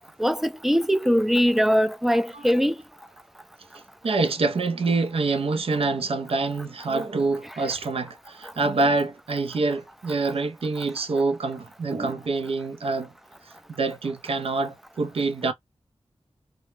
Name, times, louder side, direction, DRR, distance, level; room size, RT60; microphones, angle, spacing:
voice 1, 0.2-2.7, equal, 5° right, 0.3 m, -21 dB
voice 2, 4.0-13.1 13.7-15.5, right 3 dB, 65° right, 0.5 m, -26 dB
2.1 x 2.0 x 3.1 m
wide cardioid pair, 65°, 11 cm